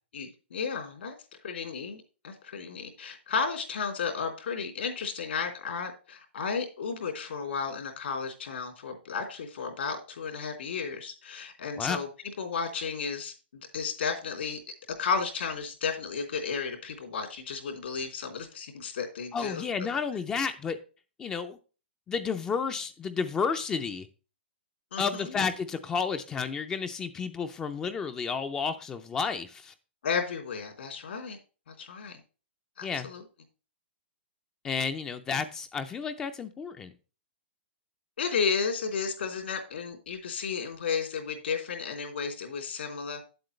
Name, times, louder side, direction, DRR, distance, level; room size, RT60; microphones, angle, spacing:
voice 1, 0.1-1.1 1.4-12.1 12.4-14.6 15.0-19.6 24.9-25.4 30.0-31.4 31.7-32.2 32.8-33.2 38.2-43.2, left 5 dB, 75° left, 4 dB, 3.3 m, -33 dB
voice 2, 19.3-20.8 21.2-21.6 22.1-24.1 25.0-29.7 32.8-33.1 34.6-36.9, left 5 dB, 10° left, 10 dB, 0.5 m, -31 dB
8.8 x 7.9 x 3.2 m, 0.34 s
hypercardioid pair, 170°, 6 cm